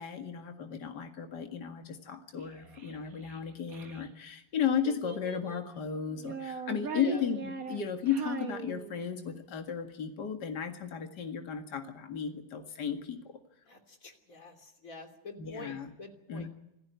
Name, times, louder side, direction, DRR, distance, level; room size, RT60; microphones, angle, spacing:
voice 1, 0.0-13.2 15.4-15.9 16.3-16.5, left 7 dB, 60° left, 6 dB, 2.5 m, -34 dB
Child speech kid speaking, 2.4-4.1 4.8-5.7 6.2-9.3, right 5 dB, 50° right, 2.0 m, -41 dB
voice 2, 6.9-7.2 13.7-16.5, left 3 dB, 45° left, 5 dB, 3.5 m, -46 dB
27.0 x 15.0 x 9.5 m, 0.84 s
omnidirectional pair, 2.0 m